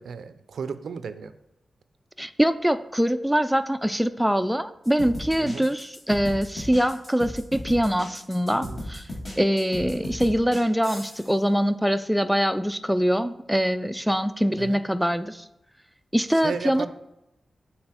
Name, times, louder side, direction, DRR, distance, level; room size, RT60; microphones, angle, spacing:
voice 1, 0.0-1.3 5.4-5.7 8.6-8.8 14.6-14.8 16.4-16.9, right 6 dB, 90° right, 11 dB, 0.4 m, -34 dB
voice 2, 2.2-9.1 9.4-15.4 16.1-16.9, equal, ahead, 9 dB, 0.4 m, -23 dB
sound 1, 4.8-11.3, left 1 dB, 45° left, 2.2 m, -36 dB
7.4 x 4.0 x 4.4 m, 0.88 s
cardioid pair, 80°, 0 cm